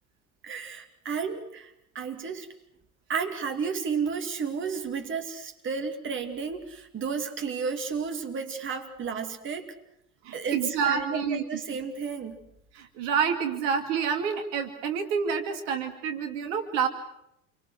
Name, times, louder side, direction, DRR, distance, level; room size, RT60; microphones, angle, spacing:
voice 1, 0.4-2.5 3.1-9.7 10.3-12.4, right 5 dB, 25° right, 5 dB, 2.6 m, -32 dB
voice 2, 10.2-11.4 12.7-16.9, right 6 dB, 50° right, 6 dB, 2.5 m, -28 dB
28.0 x 24.5 x 6.3 m, 0.80 s
figure-of-eight pair, 75°, 44 cm